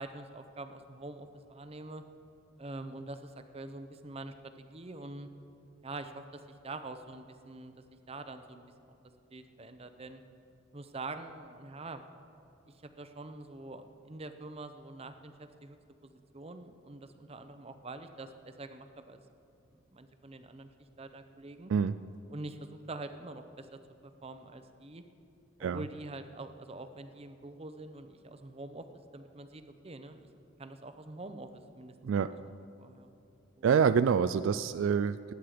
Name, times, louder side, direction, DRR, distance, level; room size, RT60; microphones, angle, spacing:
voice 1, 0.0-2.0 2.6-5.3 5.8-7.7 8.1-8.6 9.3-10.2 10.7-12.0 12.8-15.8 16.0-19.2 19.9-20.7 21.0-21.7 22.3-25.0 25.6-28.9 29.1-30.2 30.6-31.9 32.3-32.4 32.8-33.1 33.6-33.7, right 2 dB, 30° right, 9 dB, 0.7 m, -45 dB
voice 2, 33.6-35.3, right 6 dB, 70° right, 13 dB, 0.3 m, -26 dB
19.5 x 8.6 x 5.0 m, 2.8 s
head